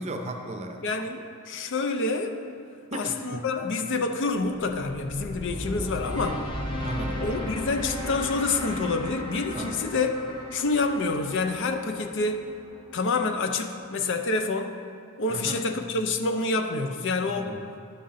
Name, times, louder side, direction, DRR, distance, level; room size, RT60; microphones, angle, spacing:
voice 1, 0.0-0.8 2.9-3.5 6.1-6.5 6.8-7.2 9.5-9.8 15.3-15.6 17.3-17.7, right 1 dB, 30° right, 4 dB, 0.6 m, -35 dB
voice 2, 0.8-2.4 2.9-6.4 7.2-10.1 10.5-12.5 12.9-14.8 15.2-17.5, left 3 dB, 55° left, 6 dB, 0.5 m, -27 dB
sound 1, 4.3-13.5, left 1 dB, 20° left, 0.9 m, -35 dB
11.0 x 5.6 x 3.8 m, 2.4 s
head